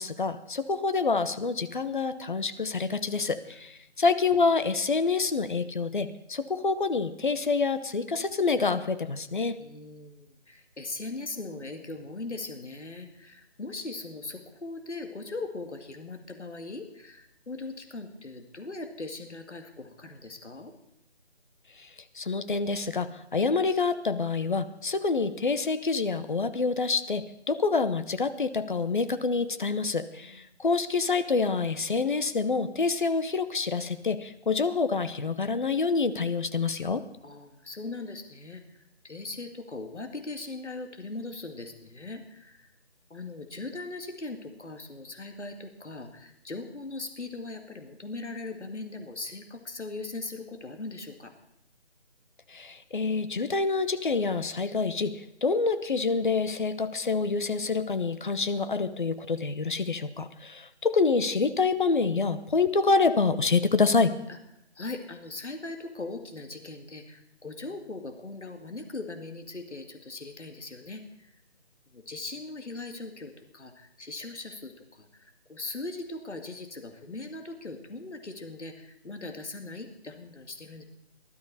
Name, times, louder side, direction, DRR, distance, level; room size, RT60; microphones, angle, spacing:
voice 1, 0.0-9.6 22.2-37.0 52.5-55.1 55.4-64.1, left 4 dB, 45° left, 11 dB, 0.9 m, -27 dB
voice 2, 9.6-20.7 30.2-30.4 37.2-38.6 39.0-42.6 43.1-51.3 64.3-64.4 64.8-71.3 71.9-80.8, left 3 dB, 80° left, 6 dB, 2.2 m, -40 dB
18.0 x 12.5 x 4.2 m, 0.83 s
figure-of-eight pair, 165°, 34 cm